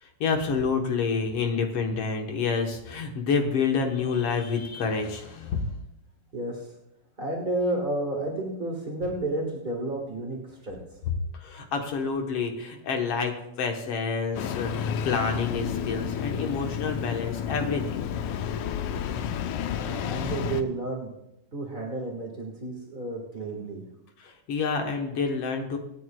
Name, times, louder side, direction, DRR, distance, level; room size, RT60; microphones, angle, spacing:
voice 1, 0.0-5.8 11.3-18.0 24.2-25.8, left 5 dB, 60° left, 4 dB, 1.7 m, -28 dB
voice 2, 6.3-6.7 7.2-10.8 19.7-21.1 21.5-23.8, right 2 dB, 45° right, -1 dB, 0.6 m, -31 dB
Engine starting, 14.3-20.6, left 8 dB, 75° left, 2.1 m, -31 dB
25.5 x 9.4 x 2.3 m, 0.87 s
omnidirectional pair, 3.8 m